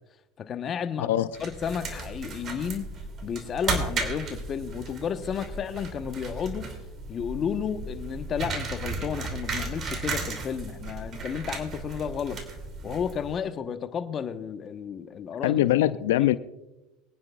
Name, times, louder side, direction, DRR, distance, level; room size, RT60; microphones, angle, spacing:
voice 1, 0.4-1.1 1.4-2.9 3.2-6.7 7.1-12.4 12.8-15.6 16.2-16.3, left 7 dB, 40° left, 9 dB, 1.1 m, -32 dB
sound 1, 1.3-13.4, right 3 dB, 40° right, 2.8 m, -35 dB
voice 2, 15.4-16.4, left 14 dB, 85° left, 13 dB, 0.4 m, -22 dB
23.5 x 9.7 x 2.4 m, 0.96 s
supercardioid pair, 95°, 0 cm